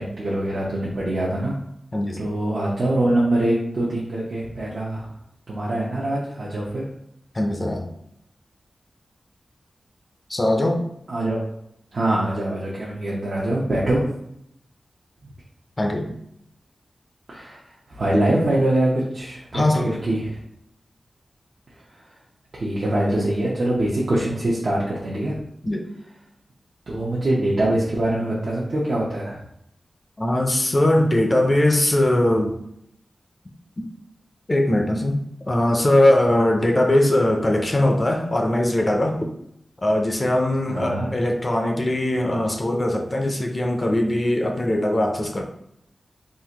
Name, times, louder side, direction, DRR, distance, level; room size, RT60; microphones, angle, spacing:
voice 1, 0.0-1.6 2.2-5.1 5.5-6.9 11.1-11.4 11.9-14.1 17.3-17.6 17.9-20.4 22.5-25.3 26.9-29.4 40.7-41.1, right 1 dB, 60° right, -6 dB, 0.8 m, -23 dB
voice 2, 1.9-2.2 7.3-7.9 10.3-10.8 15.8-16.1 19.5-19.9 25.6-25.9 30.2-32.5 33.8-33.9 34.5-35.2 35.5-39.3 39.8-45.4, left 1 dB, 30° left, 2 dB, 0.5 m, -20 dB
3.8 x 2.5 x 2.9 m, 0.75 s
wide cardioid pair, 90°, 0 cm